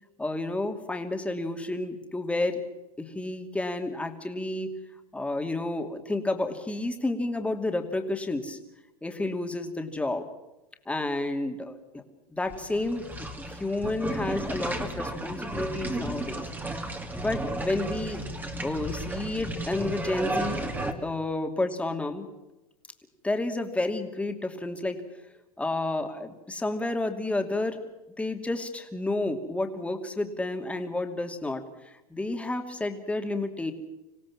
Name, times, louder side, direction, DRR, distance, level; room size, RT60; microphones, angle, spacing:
voice 1, 0.2-2.6 3.0-4.7 5.1-8.6 9.0-10.2 10.9-12.0 12.3-16.5 17.1-18.2 18.6-20.6 21.0-22.3 23.2-25.0 25.6-27.8 28.2-33.7, left 2 dB, 5° left, 5 dB, 2.8 m, -30 dB
sound 1, 12.5-20.9, right 1 dB, 10° right, 2.5 m, -33 dB
27.0 x 17.0 x 7.4 m, 0.97 s
hypercardioid pair, 115°, 19 cm